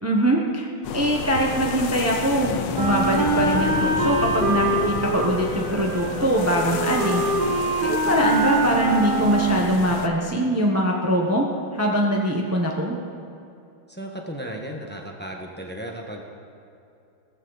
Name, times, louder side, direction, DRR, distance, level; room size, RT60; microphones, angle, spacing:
voice 1, 0.0-7.2 7.8-11.5 11.7-12.9, equal, 20° right, -1 dB, 0.4 m, -22 dB
sound 1, 0.8-10.1, left 8 dB, 80° left, 1.7 m, -31 dB
Wind instrument woodwind instrument, 2.7-9.7, right 2 dB, 35° right, 1.0 m, -24 dB
voice 2, 13.9-16.2, equal, 5° left, 1 dB, 0.8 m, -35 dB
16.5 x 15.0 x 4.0 m, 2.7 s
omnidirectional pair, 2.3 m